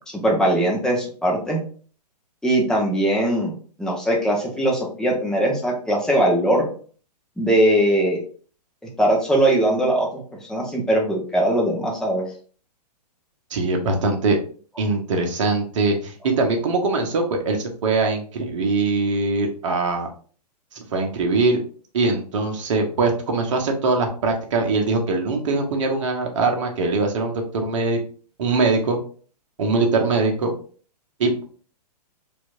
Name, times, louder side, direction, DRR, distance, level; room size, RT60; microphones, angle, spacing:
voice 1, 0.1-1.6 2.4-3.5 3.8-6.6 7.4-8.2 9.0-10.2 10.5-12.2, right 1 dB, 5° left, -2 dB, 0.7 m, -20 dB
voice 2, 13.5-14.4 14.8-20.1 20.7-21.6 21.9-28.0 28.4-29.0 29.6-30.5 31.2-31.4, right 3 dB, 50° right, 3 dB, 0.9 m, -22 dB
4.4 x 2.6 x 2.5 m, 0.43 s
figure-of-eight pair, 120°, 21 cm